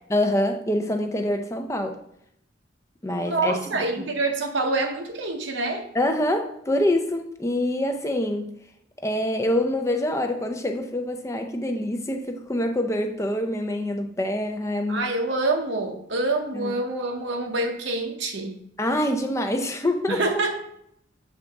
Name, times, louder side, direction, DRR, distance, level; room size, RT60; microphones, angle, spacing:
voice 1, 0.1-2.0 3.0-4.1 5.9-8.5 9.0-15.1 16.5-16.7 18.8-20.2, left 1 dB, 15° left, 5 dB, 0.5 m, -25 dB
voice 2, 3.2-5.8 14.9-18.6 20.1-20.6, right 2 dB, 65° right, 3 dB, 0.8 m, -26 dB
7.2 x 4.0 x 3.5 m, 0.74 s
head